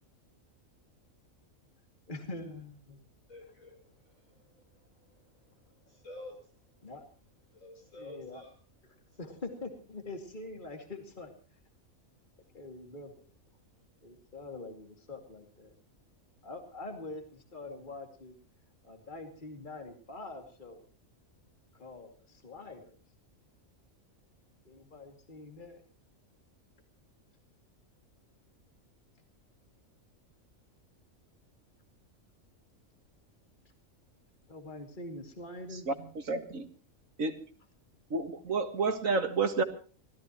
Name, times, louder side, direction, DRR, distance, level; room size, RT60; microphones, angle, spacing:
voice 1, 2.1-3.0 6.8-7.0 7.8-8.4 9.2-11.3 12.5-13.2 14.0-15.7 16.4-18.4 18.8-20.9 21.7-23.0 24.6-25.8 34.5-35.9, left 2 dB, 35° left, 4 dB, 2.6 m, -44 dB
voice 2, 3.3-5.3 5.8-6.5 7.5-8.5 9.1-9.4, left 1 dB, 75° left, 1 dB, 8.0 m, -51 dB
voice 3, 36.3-36.7 37.2-37.4 38.1-39.6, right 4 dB, 75° right, 8 dB, 2.2 m, -29 dB
25.5 x 16.5 x 3.0 m, 0.39 s
omnidirectional pair, 1.4 m